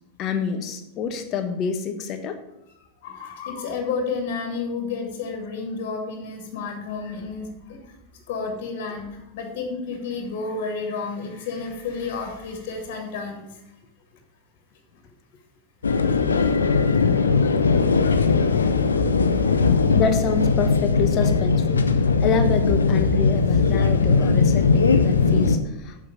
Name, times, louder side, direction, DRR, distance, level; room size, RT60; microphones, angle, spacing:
voice 1, 0.2-2.4 16.9-17.0 17.5-17.7 19.9-21.8 22.2-26.0, left 5 dB, 35° left, 7 dB, 1.2 m, -27 dB
voice 2, 3.0-8.0 8.3-13.6 14.9-15.0 17.4-17.5 18.2-18.7 19.0-19.5, left 4 dB, 50° left, 3 dB, 2.2 m, -31 dB
sound 1, 15.8-25.6, left 4 dB, 75° left, 0.7 m, -19 dB
7.6 x 6.2 x 7.3 m, 0.90 s
figure-of-eight pair, 90°, 0 cm